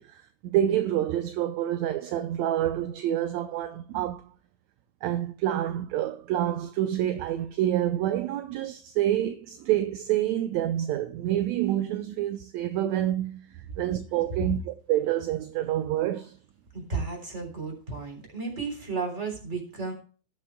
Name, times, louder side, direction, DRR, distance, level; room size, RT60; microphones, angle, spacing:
voice 1, 0.0-4.2 5.0-13.4 13.8-16.3, right 12 dB, 75° right, 1.7 m, -27 dB
voice 2, 16.7-19.9, right 4 dB, 20° right, 3.6 m, -33 dB
18.5 x 7.5 x 2.2 m
omnidirectional pair, 3.7 m